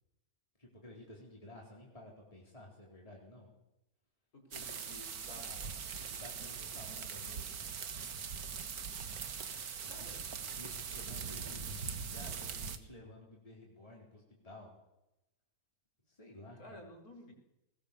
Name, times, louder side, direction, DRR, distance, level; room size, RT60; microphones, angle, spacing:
voice 1, 0.6-3.5 6.0-7.6 10.0-10.1 10.4-14.7 16.1-16.9, left 1 dB, 25° left, -3 dB, 4.4 m, -53 dB
voice 2, 4.3-5.7 9.8-10.2 16.6-17.3, left 1 dB, 80° left, 2 dB, 5.0 m, -53 dB
sound 1, 4.5-12.8, right 6 dB, 80° right, 1.9 m, -41 dB
20.5 x 20.0 x 6.9 m, 0.91 s
omnidirectional pair, 1.6 m